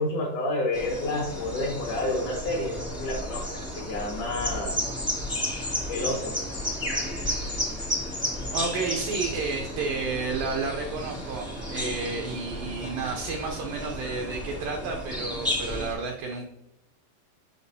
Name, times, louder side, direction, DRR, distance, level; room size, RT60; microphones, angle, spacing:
voice 1, 0.0-4.7 5.9-6.3, left 2 dB, 75° left, -2 dB, 1.8 m, -29 dB
sound 1, 0.7-15.9, left 1 dB, 5° left, 0.4 m, -32 dB
voice 2, 8.5-16.5, right 4 dB, 90° right, 2 dB, 1.9 m, -31 dB
6.9 x 6.8 x 2.7 m, 0.91 s
omnidirectional pair, 4.7 m